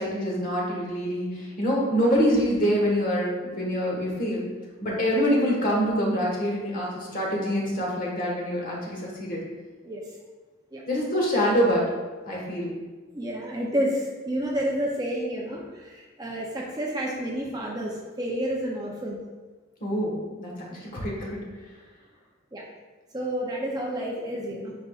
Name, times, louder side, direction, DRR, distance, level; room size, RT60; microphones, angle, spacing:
voice 1, 0.0-4.4 4.8-9.4 10.9-11.8 12.3-12.7 19.8-21.4, equal, 40° left, -3 dB, 1.4 m, -25 dB
voice 2, 13.1-19.2 22.5-22.6 23.1-24.8, equal, 20° right, -2 dB, 0.6 m, -30 dB
10.0 x 4.0 x 2.4 m, 1.3 s
head